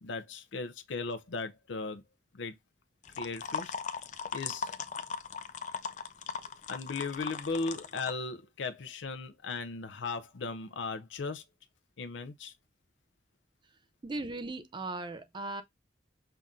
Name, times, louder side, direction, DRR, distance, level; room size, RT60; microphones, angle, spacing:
voice 1, 0.0-2.0 2.3-2.6 3.2-3.7 4.3-4.7 6.7-11.4 12.0-12.5, left 4 dB, 90° left, 0.6 m, -37 dB
sound 1, 3.0-8.1, left 5 dB, 40° left, 0.5 m, -38 dB
voice 2, 14.0-15.6, right 2 dB, 25° right, 0.4 m, -37 dB
5.6 x 2.6 x 3.5 m
head